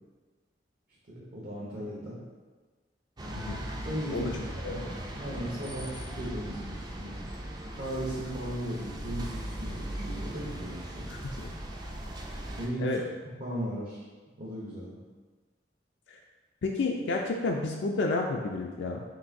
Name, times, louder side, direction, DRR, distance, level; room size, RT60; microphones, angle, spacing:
voice 1, 1.1-2.2 3.2-3.5 3.8-4.9 5.1-7.2 7.8-11.1 12.6-13.0 13.4-14.0 14.4-15.0, right 1 dB, 50° right, -7 dB, 0.7 m, -37 dB
sound 1, 3.2-12.7, right 1 dB, 20° right, 0.4 m, -38 dB
voice 2, 11.1-11.5 12.8-13.0 16.1-16.2 16.6-19.0, left 3 dB, 70° left, 1 dB, 0.3 m, -31 dB
6.0 x 2.6 x 2.6 m, 1.4 s
head